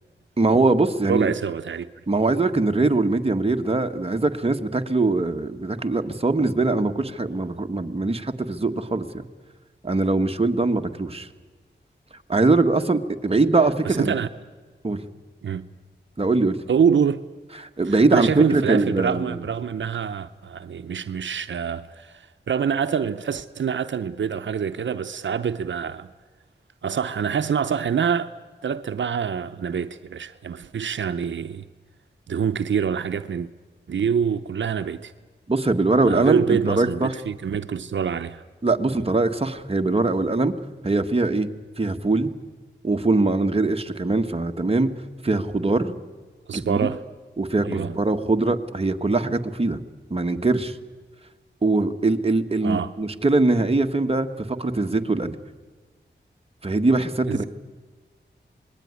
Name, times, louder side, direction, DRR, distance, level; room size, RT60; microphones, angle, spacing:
voice 1, 0.4-1.3 2.1-9.2 9.8-11.3 12.3-14.1 14.8-15.0 16.2-16.6 17.6-19.4 35.5-37.1 38.6-40.5 40.8-41.5 41.8-42.3 42.8-44.9 45.2-45.9 46.5-46.8 47.4-49.8 50.1-50.8 51.6-55.3 56.6-57.5, right 3 dB, 30° right, 1.6 m, -22 dB
voice 2, 1.1-1.9 13.8-14.3 15.4-15.6 16.7-17.2 17.8-26.1 26.8-28.3 28.6-31.6 32.3-33.5 33.9-35.1 36.0-38.4 46.5-47.0 47.6-47.9 52.6-52.9 57.3-57.4, right 7 dB, 80° right, 0.8 m, -25 dB
27.0 x 20.0 x 9.7 m
wide cardioid pair, 75°, 19 cm